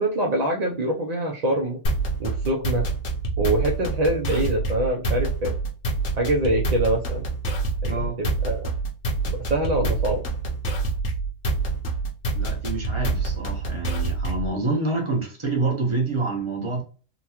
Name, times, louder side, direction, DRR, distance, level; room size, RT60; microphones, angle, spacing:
voice 1, 0.0-1.8 2.2-2.9 3.4-5.5 6.2-7.2 7.8-8.7 9.5-10.2, right 1 dB, 55° right, 0.4 m, -24 dB
sound 1, 1.8-14.5, right 3 dB, 60° left, 1.1 m, -26 dB
voice 2, 7.9-8.2 12.3-16.8, right 3 dB, 25° right, 0.9 m, -27 dB
3.9 x 2.2 x 2.9 m
omnidirectional pair, 1.4 m